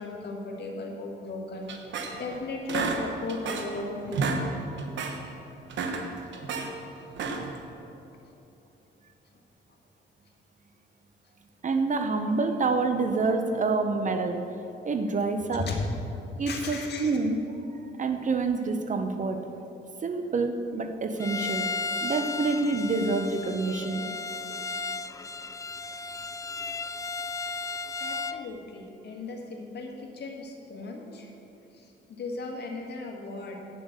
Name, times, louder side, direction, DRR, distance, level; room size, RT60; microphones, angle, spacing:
voice 1, 0.0-1.8 2.2-4.5 15.6-16.0 16.5-17.1 28.0-31.3 31.7-33.6, left 3 dB, 55° left, 1 dB, 1.8 m, -36 dB
sound 1, 1.7-2.4 2.7-3.8 4.1-4.4 4.8-5.2 5.6-6.7 7.1-7.6, right 4 dB, 70° right, 1.1 m, -31 dB
voice 2, 11.6-14.4 14.8-15.7 16.4-17.4 18.0-19.4 20.0-21.7 22.0-24.1, right 3 dB, 40° right, 6 dB, 0.8 m, -27 dB
Bowed string instrument, 21.2-28.4, left 3 dB, 15° left, 0.3 m, -34 dB
9.0 x 7.4 x 6.7 m, 2.9 s
cardioid pair, 90°, 20 cm